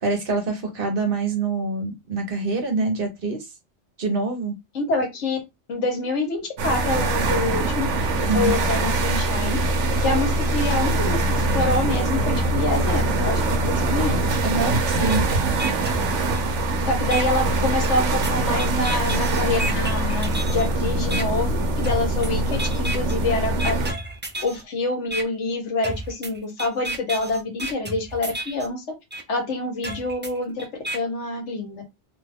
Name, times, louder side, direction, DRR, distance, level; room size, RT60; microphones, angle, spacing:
voice 1, 0.0-3.5 4.0-4.5 8.3-8.6 14.4-15.2, right 3 dB, 55° right, 1.0 m, -25 dB
voice 2, 4.7-5.4 5.7-7.9 8.2-9.6 10.0-14.2 16.8-23.8 24.4-28.8 29.3-31.8, left 2 dB, 80° left, 1.3 m, -26 dB
sound 1, 6.6-23.9, right 2 dB, 80° right, 1.0 m, -23 dB
sound 2, 15.1-15.2 15.6-16.6 17.1-17.2 17.8-20.7 21.1-21.2 21.8-22.3 22.6-23.2 23.6-24.6 25.1-25.2 25.8-28.7 29.1-29.2 29.8-31.0, right 1 dB, 20° right, 0.3 m, -32 dB
2.8 x 2.3 x 3.4 m
omnidirectional pair, 1.2 m